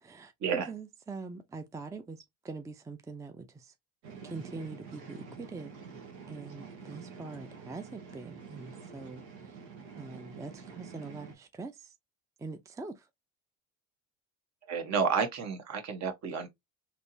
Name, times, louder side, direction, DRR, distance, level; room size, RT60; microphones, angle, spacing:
voice 1, 0.0-3.7 4.2-5.7 6.3-9.2 10.0-11.9 12.4-13.0, right 3 dB, 10° right, 0.5 m, -43 dB
sound 1, 4.0-11.3, right 5 dB, 90° right, 1.3 m, -47 dB
voice 2, 14.7-16.5, right 6 dB, 55° right, 1.2 m, -30 dB
3.4 x 2.9 x 2.6 m
supercardioid pair, 80°, 33 cm